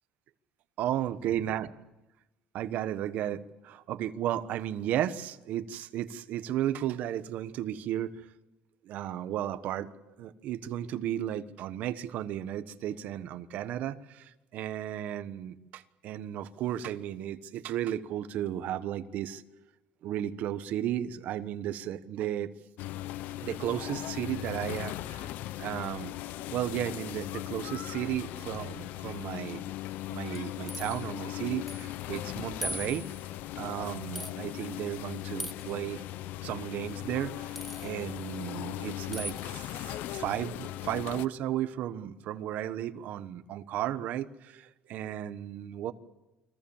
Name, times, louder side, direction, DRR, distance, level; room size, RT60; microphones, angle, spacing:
voice 1, 0.8-1.7 2.5-8.1 8.9-19.4 20.0-22.5 23.4-25.3 25.6-26.2 26.5-29.6 30.1-33.0 33.6-36.0 36.4-45.9, right 11 dB, 60° right, 12 dB, 1.3 m, -34 dB
sound 1, 22.8-41.3, left 15 dB, 70° left, 0.8 m, -38 dB
sound 2, 30.3-31.1 31.7-31.9 32.2-32.3 32.6-33.3 34.2-34.3 35.4-35.7 37.6-37.9 39.1-39.4, equal, ahead, 1.2 m, -39 dB
29.0 x 22.0 x 7.3 m, 1.0 s
cardioid pair, 145°, 3 cm